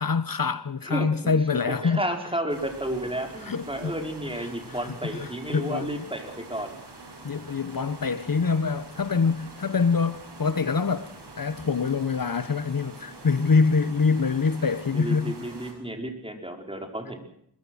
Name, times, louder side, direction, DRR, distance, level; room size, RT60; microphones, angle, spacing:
voice 1, 0.0-2.0 3.4-3.9 4.3-4.9 5.1-6.0 7.2-15.4, left 5 dB, 55° left, 1.1 m, -25 dB
voice 2, 0.8-6.7 14.9-17.3, right 1 dB, 15° right, 5.1 m, -32 dB
sound 1, 2.5-15.7, right 2 dB, 85° right, 7.3 m, -45 dB
22.5 x 21.5 x 6.4 m
wide cardioid pair, 75°, 40 cm